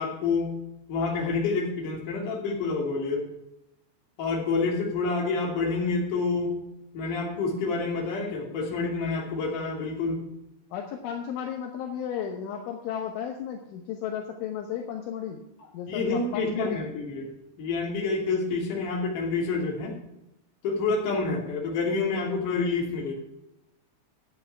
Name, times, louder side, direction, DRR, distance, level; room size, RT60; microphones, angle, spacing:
voice 1, 0.0-3.3 4.2-6.7 6.9-10.4 15.9-17.3 17.6-20.0 20.6-23.1, left 4 dB, 45° left, -1 dB, 3.7 m, -28 dB
voice 2, 10.7-15.4 15.7-16.8, left 8 dB, 75° left, 3 dB, 3.3 m, -34 dB
11.5 x 9.8 x 4.7 m, 0.87 s
omnidirectional pair, 5.9 m